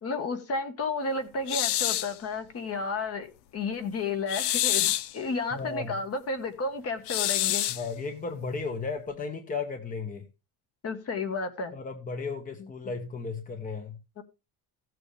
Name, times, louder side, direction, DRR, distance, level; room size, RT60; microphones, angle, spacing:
voice 1, 0.0-7.6 10.8-11.7 12.6-12.7 14.2-14.3, left 3 dB, 40° left, 8 dB, 1.5 m, -32 dB
sound 1, 1.5-2.2 4.3-5.1 7.1-7.9, left 13 dB, 85° left, 0.8 m, -27 dB
voice 2, 5.2-6.0 7.7-10.2 11.7-14.0, left 4 dB, 20° left, 6 dB, 1.0 m, -35 dB
15.5 x 7.6 x 3.4 m, 0.28 s
cardioid pair, 165°, 39 cm